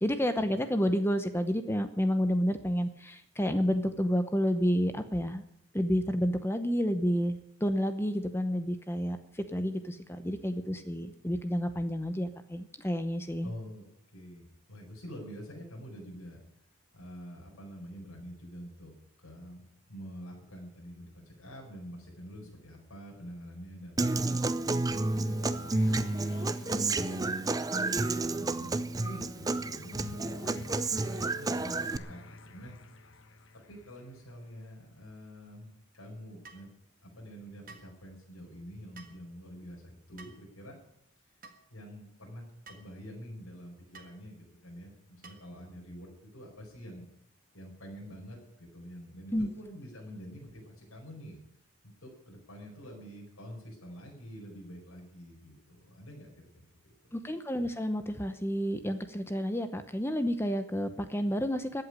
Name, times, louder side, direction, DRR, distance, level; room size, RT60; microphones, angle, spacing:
voice 1, 0.0-5.4 5.7-13.5 49.3-49.5 57.1-61.8, equal, 10° left, 9 dB, 0.8 m, -30 dB
voice 2, 13.4-13.9 14.1-14.4 14.7-16.4 16.9-18.9 19.2-19.6 19.9-26.1 26.6-27.9 28.4-30.4 31.0-32.8 33.7-36.7 37.0-40.8 41.7-47.1 47.5-51.4 52.0-57.2, equal, 85° left, -2 dB, 4.7 m, -47 dB
Human voice / Acoustic guitar, 24.0-32.0, right 2 dB, 15° right, 0.5 m, -30 dB
sound 1, 24.5-34.9, left 2 dB, 60° left, 1.0 m, -50 dB
sound 2, 36.4-36.7 37.7-37.9 39.0-39.2 40.2-40.5 41.4-41.6 42.7-42.9 43.9-44.2 45.2-45.5, right 4 dB, 40° right, 1.7 m, -51 dB
14.5 x 8.2 x 9.9 m, 0.74 s
head